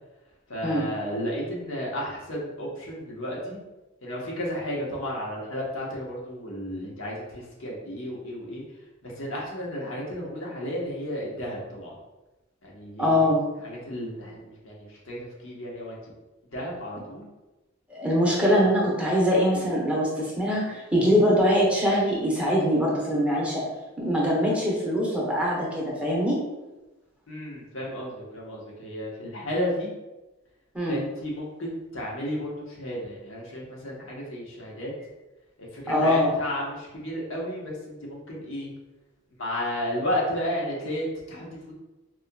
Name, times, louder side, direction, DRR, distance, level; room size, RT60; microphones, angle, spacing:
voice 1, 0.5-3.6 4.0-8.6 9.0-11.9 12.6-13.2 13.6-16.0 16.5-17.3 18.5-18.6 27.3-29.9 30.9-34.9 35.7-38.7 39.4-41.7, equal, 75° left, -4 dB, 1.0 m, -33 dB
voice 2, 13.0-13.4 17.9-23.6 24.0-26.4 30.7-31.0 35.9-36.3, equal, 5° right, -5 dB, 0.8 m, -23 dB
4.2 x 2.8 x 2.2 m, 1.1 s
head